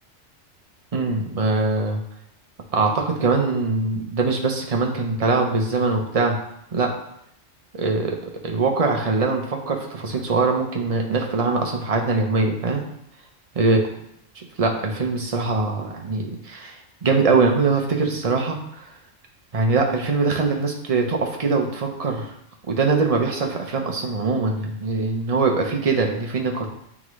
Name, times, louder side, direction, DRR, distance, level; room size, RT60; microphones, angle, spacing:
voice 1, 0.9-2.0 2.7-6.4 6.7-6.9 7.7-12.8 13.5-13.8 14.4-18.9 19.5-22.3 22.7-26.7, right 3 dB, 35° right, 1 dB, 0.8 m, -22 dB
9.3 x 3.7 x 3.1 m, 0.75 s
omnidirectional pair, 1.3 m